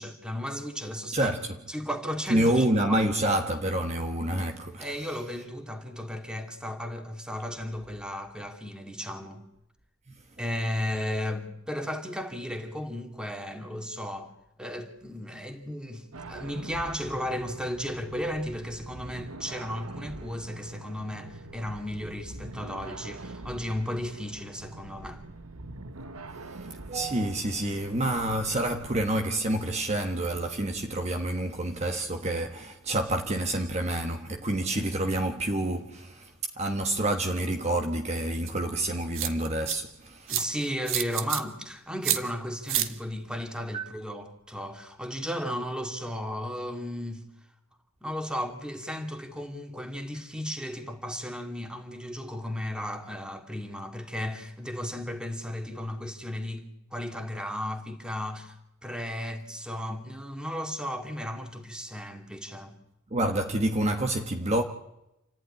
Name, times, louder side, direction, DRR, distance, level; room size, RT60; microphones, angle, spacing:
voice 1, 0.0-1.3 1.7-2.7 4.8-9.4 10.4-14.3 14.6-25.2 40.3-47.3 48.0-58.6 58.8-62.8, equal, 5° right, 2.4 m, -35 dB
voice 2, 1.1-1.6 2.3-5.1 10.1-10.2 26.3-40.5 43.7-43.9 63.1-64.6, right 1 dB, 30° right, 1.3 m, -28 dB
sound 1, 16.1-29.0, right 2 dB, 85° right, 1.3 m, -44 dB
sound 2, 38.5-38.6 39.1-39.7 40.3-40.4 40.9-41.4 42.0-42.2 42.7-42.9, right 11 dB, 60° right, 1.6 m, -27 dB
28.5 x 14.5 x 10.0 m
head